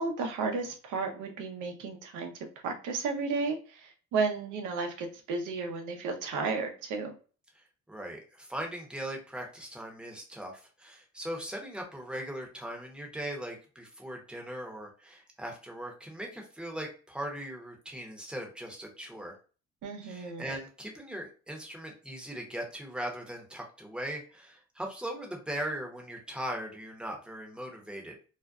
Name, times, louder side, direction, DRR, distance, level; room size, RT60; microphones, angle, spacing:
voice 1, 0.0-2.3 2.6-7.1 19.8-20.5, right 4 dB, 85° right, 4 dB, 0.6 m, -33 dB
voice 2, 7.6-19.3 20.0-28.1, right 1 dB, 5° right, 1 dB, 0.7 m, -39 dB
2.5 x 2.1 x 2.3 m, 0.37 s
cardioid pair, 90°, 30 cm